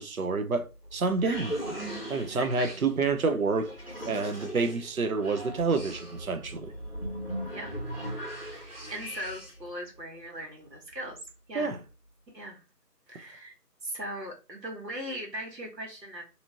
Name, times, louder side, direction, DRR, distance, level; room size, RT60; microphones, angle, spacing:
voice 1, 0.0-1.5 2.1-3.7 4.0-6.7 11.5-11.8, right 4 dB, 60° right, 0.5 m, -28 dB
sound 1, 0.6-9.7, equal, 35° left, 0.7 m, -39 dB
voice 2, 2.3-2.8 7.5-7.7 8.5-11.2 11.5-11.7 12.3-12.6 13.1-13.5 13.8-16.2, equal, 85° right, 1.4 m, -39 dB
2.7 x 2.4 x 2.8 m
figure-of-eight pair, 165°, 49 cm